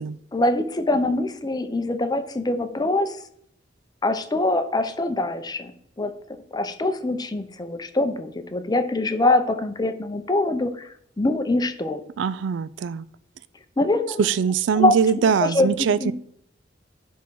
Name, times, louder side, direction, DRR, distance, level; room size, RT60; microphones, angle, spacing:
voice 1, 0.3-3.2 4.0-5.7 6.0-6.1 6.5-12.0 13.8-14.3 14.7-14.9 15.4-16.1, left 2 dB, 20° left, 9 dB, 0.6 m, -23 dB
voice 2, 12.2-13.1 14.2-16.1, right 7 dB, 70° right, 17 dB, 0.3 m, -22 dB
10.0 x 3.7 x 4.6 m, 0.67 s
head